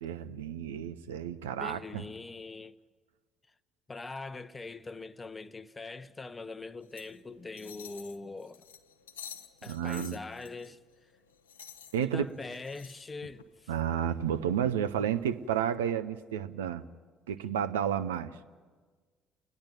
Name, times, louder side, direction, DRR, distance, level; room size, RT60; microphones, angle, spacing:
voice 1, 0.0-2.0 9.7-10.2 11.9-12.3 13.7-16.8 17.3-18.4, right 9 dB, 80° right, 0.6 m, -31 dB
voice 2, 1.6-2.8 3.9-8.6 9.6-10.8 11.9-13.7, left 3 dB, 25° left, 0.8 m, -42 dB
sound 1, 6.8-15.6, left 7 dB, 85° left, 0.7 m, -52 dB
28.0 x 10.5 x 9.6 m
hypercardioid pair, 50°, 0 cm